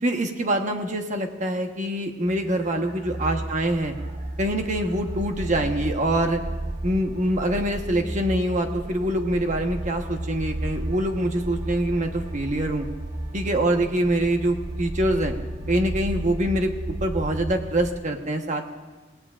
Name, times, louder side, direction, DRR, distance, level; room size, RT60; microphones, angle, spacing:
voice 1, 0.0-3.9 4.4-6.4 6.8-12.9 13.3-15.3 15.7-18.7, right 1 dB, 40° right, 4 dB, 1.2 m, -25 dB
sound 1, 2.3-17.9, right 1 dB, 60° right, 2.9 m, -33 dB
27.0 x 17.5 x 2.5 m, 1.2 s
head